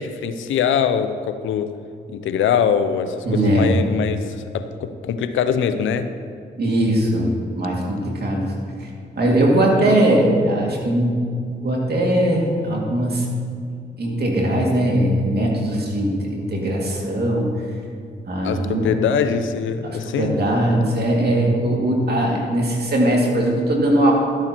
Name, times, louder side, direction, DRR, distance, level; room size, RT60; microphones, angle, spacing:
voice 1, 0.0-1.7 2.1-6.1 18.4-20.4, left 7 dB, 85° left, 10 dB, 0.6 m, -22 dB
voice 2, 3.2-3.7 6.6-8.4 8.8-8.9 9.2-11.2 11.6-13.3 14.0-17.5 18.3-18.9 20.2-24.1, right 1 dB, 55° right, -2 dB, 2.3 m, -20 dB
12.0 x 8.6 x 3.0 m, 2.4 s
supercardioid pair, 45°, 20 cm